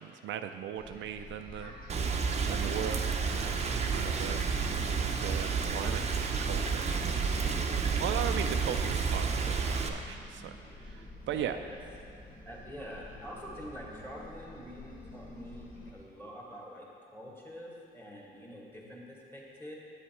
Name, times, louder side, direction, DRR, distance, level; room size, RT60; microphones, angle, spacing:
voice 1, 0.0-1.7 2.5-4.4 5.2-6.8 7.3-7.6 8.0-10.6 10.8-11.6, right 9 dB, 70° right, 7 dB, 0.4 m, -38 dB
sound 1, 0.8-15.9, left 1 dB, 45° left, 1.8 m, -50 dB
Rain, 1.9-9.9, right 5 dB, 35° right, 0.7 m, -30 dB
voice 2, 7.8-8.2 11.3-11.8 12.4-16.9 17.1-19.7, equal, 10° left, -3 dB, 1.9 m, -46 dB
8.5 x 7.3 x 4.4 m, 2.5 s
cardioid pair, 90°, 20 cm